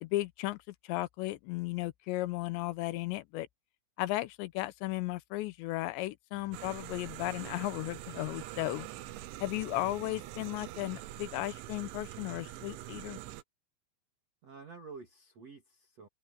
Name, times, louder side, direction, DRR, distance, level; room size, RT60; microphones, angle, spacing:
voice 1, 0.0-3.5 4.0-8.9 9.4-13.2, left 18 dB, 80° left, 2.8 m, -35 dB
sound 1, 6.5-13.4, right 15 dB, 85° right, 3.4 m, -44 dB
voice 2, 14.4-16.1, right 4 dB, 45° right, 2.7 m, -50 dB
open air
omnidirectional pair, 5.3 m